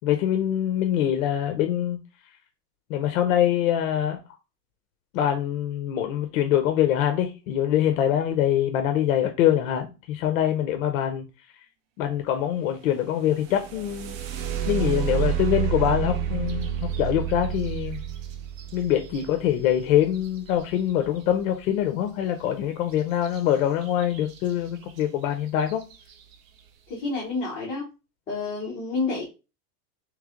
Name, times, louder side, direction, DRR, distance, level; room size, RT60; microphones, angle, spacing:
voice 1, 0.0-2.0 2.9-4.2 5.1-11.3 12.0-14.2 14.7-18.0 18.7-25.8, left 11 dB, 60° left, 0.6 m, -24 dB
sound 1, 13.3-21.2 23.2-23.4 23.8-24.4 25.0-25.1 25.6-25.9, right 10 dB, 55° right, 0.7 m, -30 dB
voice 2, 26.9-27.9 28.3-29.3, left 3 dB, 15° left, 0.7 m, -29 dB
3.3 x 3.2 x 3.6 m
supercardioid pair, 170°, 47 cm